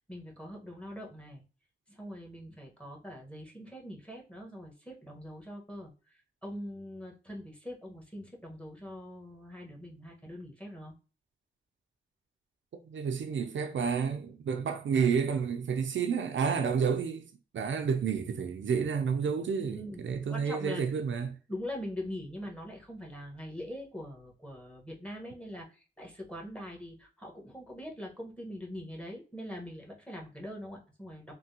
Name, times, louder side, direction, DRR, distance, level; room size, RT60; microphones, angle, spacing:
voice 1, 0.0-1.4 1.9-5.9 6.4-10.9 19.6-20.0 20.3-20.8 21.5-31.3, equal, 5° left, 1.2 m, -42 dB
voice 2, 12.8-17.3 17.5-21.4, right 6 dB, 75° right, 0.4 m, -30 dB
3.3 x 2.2 x 2.8 m
cardioid pair, 55°, 20 cm